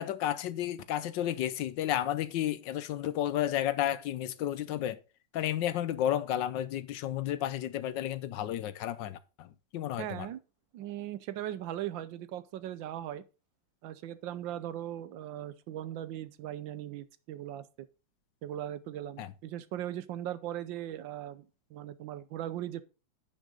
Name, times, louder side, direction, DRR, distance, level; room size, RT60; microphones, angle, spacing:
voice 1, 0.0-5.0 5.3-9.2 9.7-10.3 19.2-19.3, left 11 dB, 75° left, 1.3 m, -32 dB
voice 2, 10.0-10.4 10.7-13.2 13.8-17.6 18.4-22.8, right 12 dB, 85° right, 1.4 m, -39 dB
10.0 x 6.4 x 3.9 m
omnidirectional pair, 2.1 m